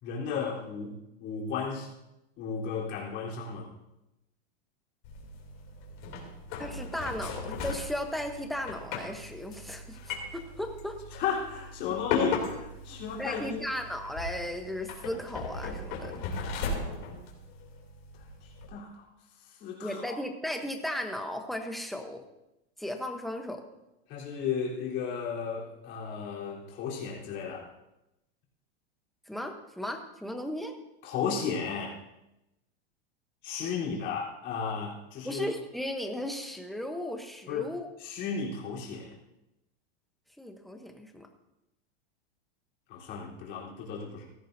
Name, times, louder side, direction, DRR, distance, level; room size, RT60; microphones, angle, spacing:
voice 1, 0.0-1.9 2.4-3.7 11.1-13.6 18.4-19.0 19.5-20.2 24.1-27.7 31.0-32.0 33.4-35.5 37.5-37.7 38.0-39.1 42.9-44.3, left 6 dB, 35° left, -4 dB, 3.7 m, -34 dB
sound 1, 5.0-18.7, left 4 dB, 50° left, 3.0 m, -37 dB
voice 2, 6.6-11.0 12.9-16.3 19.8-22.2 22.8-23.6 29.3-30.7 35.2-37.9 40.4-41.3, left 1 dB, ahead, 4 dB, 0.9 m, -36 dB
17.0 x 13.5 x 2.7 m, 0.90 s
supercardioid pair, 155°, 30 cm